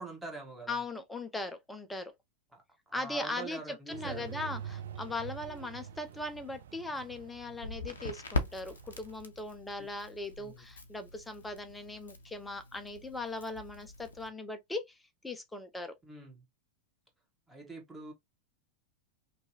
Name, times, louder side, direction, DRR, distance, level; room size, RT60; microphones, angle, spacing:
voice 1, 0.0-0.8 2.5-2.6 2.9-4.5 9.8-9.9 10.4-10.6 16.0-16.4 17.5-18.1, right 3 dB, 10° right, 0.9 m, -45 dB
voice 2, 0.7-2.1 2.9-15.0 15.2-15.9, left 2 dB, 10° left, 0.4 m, -39 dB
sound 1, 3.9-9.2, right 9 dB, 60° right, 0.3 m, -46 dB
Crackle, 7.6-14.3, left 2 dB, 70° left, 0.5 m, -41 dB
2.7 x 2.3 x 2.7 m
figure-of-eight pair, 90°, 0 cm